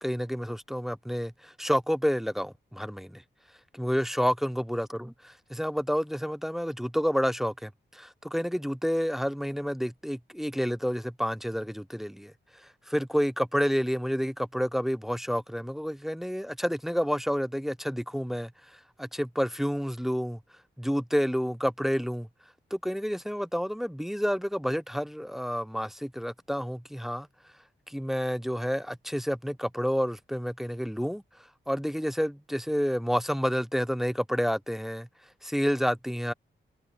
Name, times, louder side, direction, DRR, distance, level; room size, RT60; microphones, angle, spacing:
voice 1, 0.0-3.2 3.7-20.4 20.8-22.3 22.7-27.3 27.9-31.2 31.7-35.1 35.4-36.3, equal, ahead, 0.5 m, -29 dB
wide cardioid pair, 170°, 20 cm